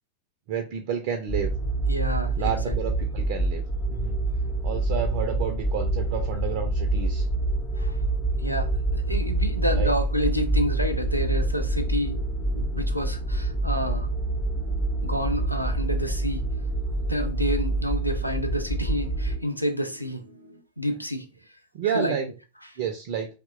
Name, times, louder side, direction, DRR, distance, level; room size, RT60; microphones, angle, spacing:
voice 1, 0.5-1.5 2.4-3.6 3.9-4.2 4.6-7.2 9.8-9.9 12.7-12.9 21.7-22.3 22.8-23.3, right 7 dB, 50° right, 0.3 m, -30 dB
sound 1, 1.3-19.4, right 2 dB, 20° left, 0.6 m, -26 dB
voice 2, 1.9-2.5 7.8-8.0 8.4-12.2 12.5-14.1 15.0-16.4 17.1-20.2 20.8-21.3 21.8-22.2, equal, 90° left, 0.3 m, -29 dB
sound 2, 9.4-20.6, right 1 dB, 80° right, 0.6 m, -49 dB
2.7 x 2.0 x 2.3 m
figure-of-eight pair, 90°, 0 cm